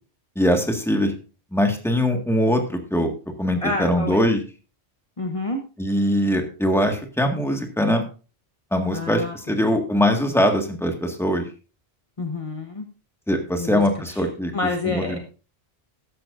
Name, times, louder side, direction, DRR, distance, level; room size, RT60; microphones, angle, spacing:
voice 1, 0.3-1.1 1.5-3.1 3.4-4.4 5.8-8.1 8.7-11.5 13.3-14.5 14.8-15.2, equal, ahead, 4 dB, 1.7 m, -22 dB
voice 2, 3.6-4.2 5.2-5.6 8.9-9.6 12.2-12.8 13.6-13.8 14.5-15.2, left 3 dB, 30° left, 3 dB, 1.1 m, -28 dB
13.5 x 11.0 x 2.6 m, 0.34 s
omnidirectional pair, 1.1 m